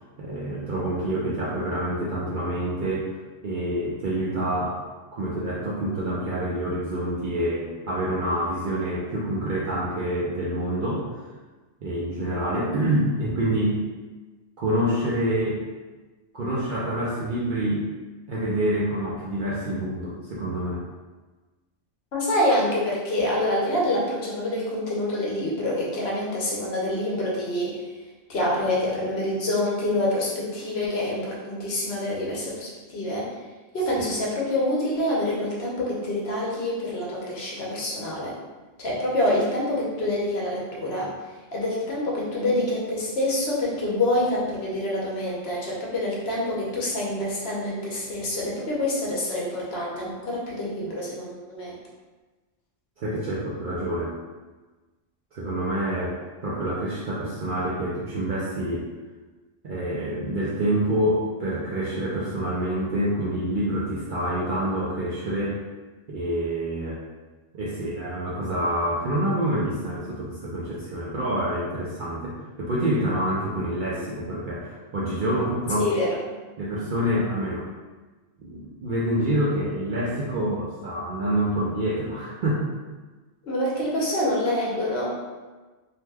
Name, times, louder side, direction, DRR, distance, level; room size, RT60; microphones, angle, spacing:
voice 1, 0.2-3.1 3.4-4.8 5.1-11.2 11.8-13.8 14.6-15.6 16.3-17.9 18.3-20.8 34.0-34.1 53.0-54.1 55.3-58.9 59.6-65.6 66.1-67.0 67.5-75.9 76.6-77.7 78.4-82.6, right 1 dB, 60° right, -7 dB, 0.5 m, -27 dB
voice 2, 22.1-27.8 28.3-33.3 33.7-38.4 38.8-41.1 41.5-51.7 75.8-76.2 83.4-85.1, left 1 dB, 65° left, -4 dB, 0.9 m, -26 dB
2.7 x 2.2 x 3.2 m, 1.3 s
omnidirectional pair, 1.3 m